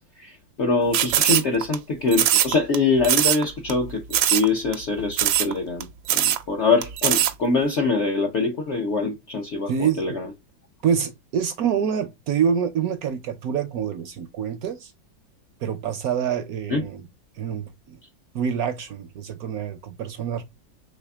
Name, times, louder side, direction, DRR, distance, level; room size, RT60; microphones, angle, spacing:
voice 1, 0.0-5.9 6.1-10.3 16.7-16.8, left 4 dB, 65° left, 0.7 m, -24 dB
sound 1, 0.9-1.8 2.1-2.8 3.0-3.4 3.7-3.8 4.1-4.5 4.7-4.8 5.1-5.5 5.8-5.9 6.1-6.4 6.8-7.3, right 12 dB, 85° right, 1.4 m, -20 dB
voice 2, 9.7-10.1 10.8-14.9 15.6-17.0 17.4-18.0 18.3-20.4, right 8 dB, 70° right, 0.9 m, -26 dB
5.0 x 3.4 x 2.2 m
omnidirectional pair, 2.1 m